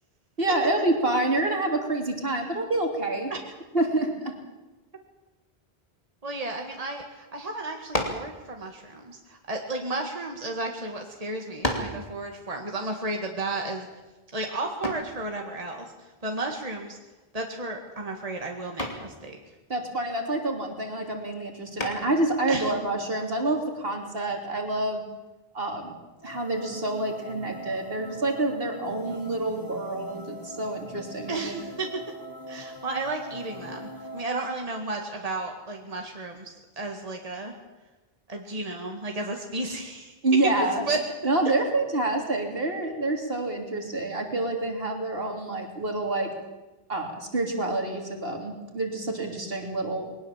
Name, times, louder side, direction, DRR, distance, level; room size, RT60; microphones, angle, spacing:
voice 1, 0.4-3.3 3.7-4.4 19.7-25.0 25.5-25.9 26.2-31.6 40.2-40.8 41.2-46.3 46.9-50.1, right 2 dB, 65° right, 2 dB, 3.4 m, -27 dB
voice 2, 6.2-13.9 14.3-15.9 16.2-17.0 17.3-19.4 22.5-22.7 31.3-31.9 32.5-37.5 38.3-40.1 40.6-41.0, right 2 dB, 35° right, 2 dB, 2.1 m, -33 dB
sound 1, 7.9-8.3 9.2-10.4 11.1-11.2 11.6-12.0 14.8-15.2 17.1-17.5 17.8-18.2 18.8-19.1 21.8-22.2, left 1 dB, 35° left, 2.9 m, -31 dB
sound 2, 26.2-34.2, right 1 dB, 20° left, 1.6 m, -42 dB
21.5 x 19.5 x 7.4 m, 1.1 s
omnidirectional pair, 1.0 m